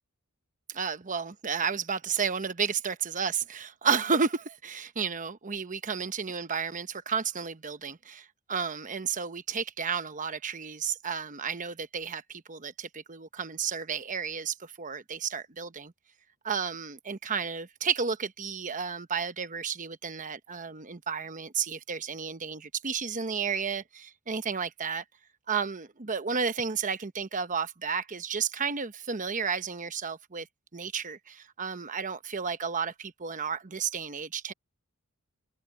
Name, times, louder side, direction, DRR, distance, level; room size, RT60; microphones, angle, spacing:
voice 1, 0.7-15.9 16.4-25.0 25.5-30.5 30.7-34.5, right 6 dB, 35° right, 1.0 m, -32 dB
head